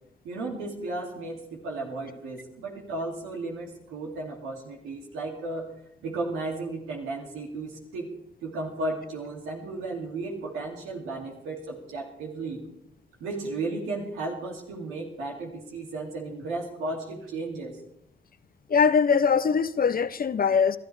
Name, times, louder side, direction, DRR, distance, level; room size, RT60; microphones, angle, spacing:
voice 1, 0.2-5.7 6.0-8.1 8.4-12.6 13.2-17.8, right 2 dB, 85° right, 2.5 m, -34 dB
voice 2, 18.7-20.8, left 6 dB, 45° left, 0.8 m, -22 dB
21.5 x 13.0 x 3.3 m
hypercardioid pair, 45°, 20 cm